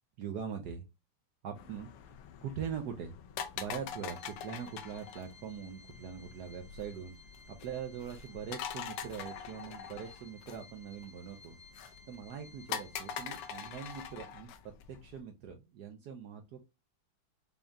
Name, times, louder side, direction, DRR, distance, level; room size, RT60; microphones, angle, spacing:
voice 1, 0.2-0.8 1.4-1.9 2.4-3.1 3.6-7.1 7.5-11.6 12.1-14.5 14.9-16.7, right 7 dB, 75° right, 4 dB, 0.9 m, -42 dB
sound 1, 1.5-15.2, left 8 dB, 85° left, 1.6 m, -44 dB
Organ, 4.0-14.6, left 3 dB, 40° left, 0.9 m, -59 dB
5.3 x 2.3 x 2.5 m, 0.24 s
omnidirectional pair, 2.4 m